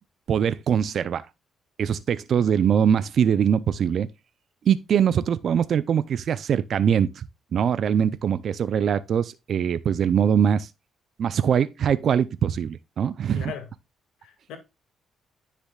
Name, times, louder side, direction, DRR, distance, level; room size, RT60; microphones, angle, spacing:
voice 1, 0.3-1.3 1.8-4.1 4.6-7.3 7.5-10.7 11.2-13.5, right 8 dB, 60° right, 0.5 m, -22 dB
voice 2, 13.3-13.7 14.2-14.6, left 8 dB, 90° left, 2.2 m, -38 dB
10.0 x 6.7 x 2.3 m
cardioid pair, 90°, 0 cm